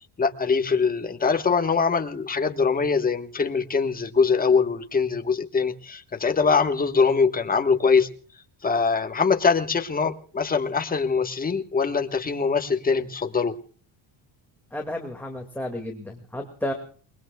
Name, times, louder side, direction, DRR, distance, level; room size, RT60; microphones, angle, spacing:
voice 1, 0.2-8.1 8.6-13.6, left 5 dB, 20° left, 1.3 m, -23 dB
voice 2, 14.7-16.7, left 1 dB, 5° left, 2.1 m, -32 dB
29.0 x 21.5 x 2.3 m
cardioid pair, 135°, 44 cm